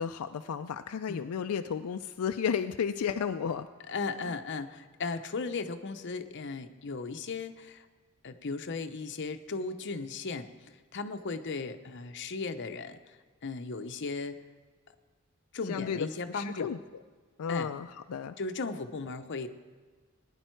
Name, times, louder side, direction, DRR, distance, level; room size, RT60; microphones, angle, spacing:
voice 1, 0.0-3.7 15.7-16.8 17.4-18.4, left 7 dB, 80° left, 8 dB, 0.4 m, -33 dB
voice 2, 3.9-7.9 8.2-14.4 15.5-16.7 17.5-17.7 18.4-19.5, left 4 dB, 55° left, 8 dB, 0.7 m, -36 dB
18.5 x 10.0 x 4.5 m, 1.5 s
head